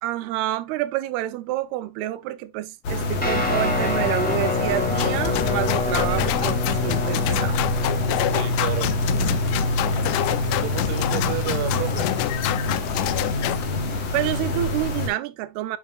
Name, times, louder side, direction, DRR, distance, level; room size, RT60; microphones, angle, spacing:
voice 1, 0.0-7.6 10.9-11.3 14.1-15.8, right 14 dB, 90° right, 2.7 m, -28 dB
sound 1, 2.8-15.1, left 1 dB, 55° left, 2.3 m, -26 dB
Guitar, 3.2-12.6, left 4 dB, 5° left, 1.0 m, -28 dB
sound 2, 5.0-13.6, left 15 dB, 90° left, 1.8 m, -27 dB
voice 2, 8.3-8.9 10.5-12.1, right 12 dB, 65° right, 2.5 m, -31 dB
8.9 x 5.9 x 2.4 m
omnidirectional pair, 4.4 m